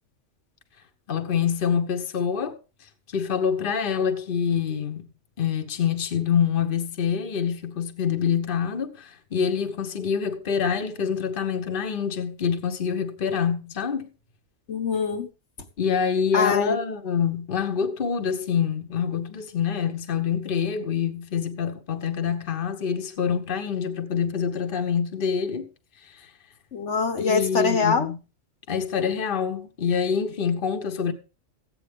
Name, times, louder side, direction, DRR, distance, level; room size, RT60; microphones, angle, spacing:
voice 1, 1.1-2.5 3.1-5.1 5.4-14.1 15.8-25.7 27.2-28.2 28.7-31.1, left 7 dB, 45° left, 1.2 m, -26 dB
voice 2, 14.7-15.3 16.3-16.8 26.7-28.1, left 5 dB, 65° left, 1.4 m, -23 dB
15.0 x 8.8 x 3.5 m
omnidirectional pair, 1.3 m